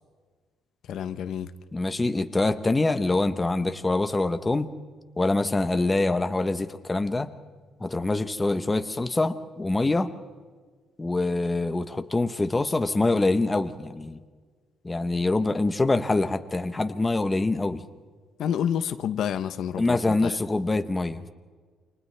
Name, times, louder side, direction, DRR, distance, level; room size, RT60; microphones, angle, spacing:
voice 1, 0.9-1.5 18.4-20.4, left 9 dB, 65° left, 11 dB, 0.8 m, -29 dB
voice 2, 1.7-4.7 5.2-7.3 7.8-10.1 11.0-14.2 14.8-17.8 19.8-21.3, left 2 dB, 15° left, 8 dB, 0.9 m, -25 dB
29.5 x 26.0 x 3.4 m, 1.5 s
cardioid pair, 145°, 0 cm